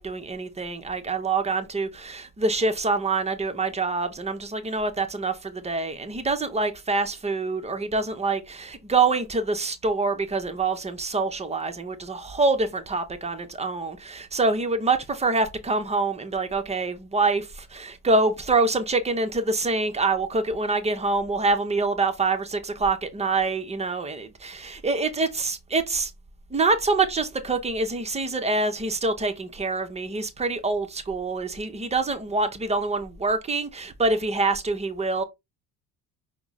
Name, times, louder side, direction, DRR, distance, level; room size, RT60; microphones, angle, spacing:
voice 1, 0.0-26.1 26.5-35.2, right 3 dB, 15° right, 0.8 m, -25 dB
5.7 x 2.2 x 4.0 m
figure-of-eight pair, 60°, 48 cm